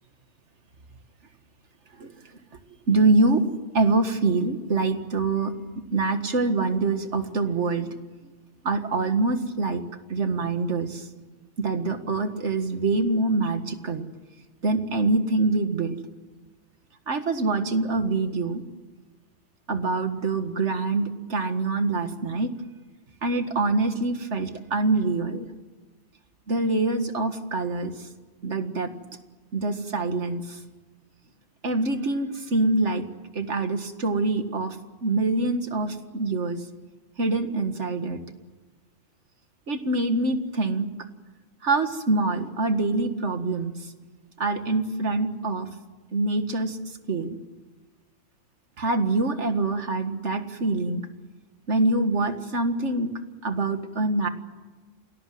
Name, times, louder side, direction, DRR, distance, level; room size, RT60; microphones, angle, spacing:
voice 1, 2.9-3.4 3.7-5.5 5.9-7.9 8.6-9.8 10.1-11.1 11.6-14.1 14.6-16.0 17.1-18.6 19.7-22.5 23.2-25.5 26.5-27.9 28.4-28.9 29.5-30.6 31.6-33.0 33.4-34.8 35.0-36.6 37.2-38.2 39.7-40.9 41.6-43.7 44.4-45.7 46.1-46.8 47.1-47.4 48.8-51.1 51.7-53.1 53.4-54.3, right 3 dB, 85° right, 8 dB, 2.1 m, -25 dB
28.0 x 19.5 x 7.8 m, 1.3 s
omnidirectional pair, 1.2 m